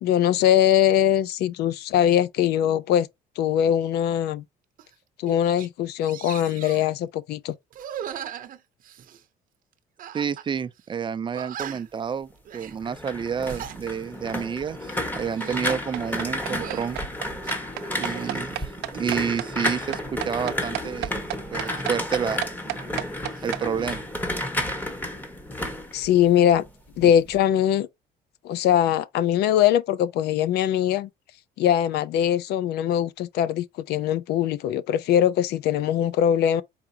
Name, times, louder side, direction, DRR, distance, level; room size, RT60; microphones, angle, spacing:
voice 1, 0.0-3.1 3.4-4.4 5.2-7.5 25.9-26.6 27.0-27.9 28.4-31.1 31.6-36.6, left 10 dB, 75° left, 0.5 m, -21 dB
sound 1, 4.8-4.9 5.3-5.7 6.0-6.9 7.7-9.2 10.0-10.5 10.8-10.9 11.3-12.0 12.5-12.8 13.3-13.8 14.2-14.5 15.1-15.7 16.5-16.9 17.4-18.4 18.9-19.8 21.6-23.0 23.3-24.0, right 9 dB, 55° right, 0.7 m, -39 dB
voice 2, 10.1-17.0 17.9-21.2 21.5-22.4 23.4-24.0 27.0-27.1, right 7 dB, 30° right, 0.4 m, -29 dB
sound 2, 12.7-26.7 27.0-27.4, left 1 dB, 10° left, 1.3 m, -32 dB
sound 3, 15.7-23.6, right 16 dB, 85° right, 0.5 m, -32 dB
4.8 x 3.6 x 2.8 m
cardioid pair, 110°, 17 cm